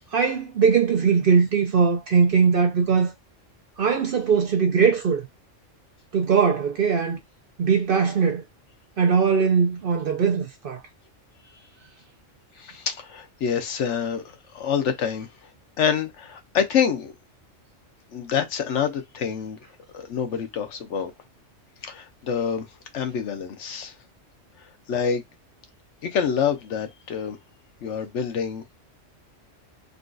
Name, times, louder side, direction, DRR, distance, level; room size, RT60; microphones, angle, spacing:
voice 1, 0.1-3.1 3.8-5.2 6.1-7.2 7.6-8.4 9.0-10.8, right 6 dB, 55° right, 0.6 m, -20 dB
voice 2, 12.6-15.3 15.8-17.1 18.1-19.6 19.9-21.1 21.8-22.7 22.9-23.9 24.9-25.2 26.0-27.4 27.8-28.7, left 7 dB, 70° left, 1.0 m, -26 dB
3.8 x 2.3 x 2.5 m
omnidirectional pair, 1.3 m